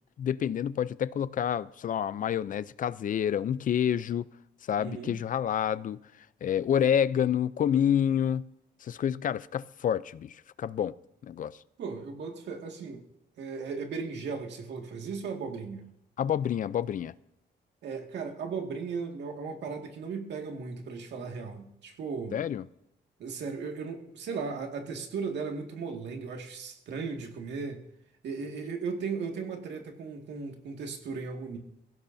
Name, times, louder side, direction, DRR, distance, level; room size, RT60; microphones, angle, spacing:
voice 1, 0.2-4.3 4.7-6.0 6.4-8.4 8.8-10.9 11.2-11.6 16.2-17.1 22.3-22.6, left 9 dB, 50° left, 0.5 m, -28 dB
voice 2, 4.8-5.2 11.8-13.0 13.4-15.9 17.8-22.4 23.2-27.8 28.2-31.6, right 5 dB, 80° right, 2.0 m, -36 dB
23.0 x 16.0 x 2.7 m
cardioid pair, 130°, 18 cm